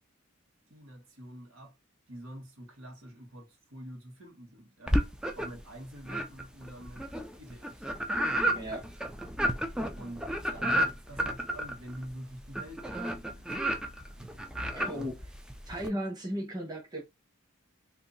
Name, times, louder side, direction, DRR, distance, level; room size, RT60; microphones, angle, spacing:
voice 1, 0.7-1.8 2.1-5.0 5.3-7.1 7.3-7.9 9.9-13.5 14.2-14.4 14.9-15.1, equal, 80° right, 1.3 m, -46 dB
sound 1, 4.9-5.7 6.1-15.9, equal, 5° right, 0.3 m, -32 dB
voice 2, 8.5-8.9 14.7-15.2 15.7-17.0, equal, 20° right, 1.1 m, -35 dB
2.7 x 2.6 x 3.8 m
head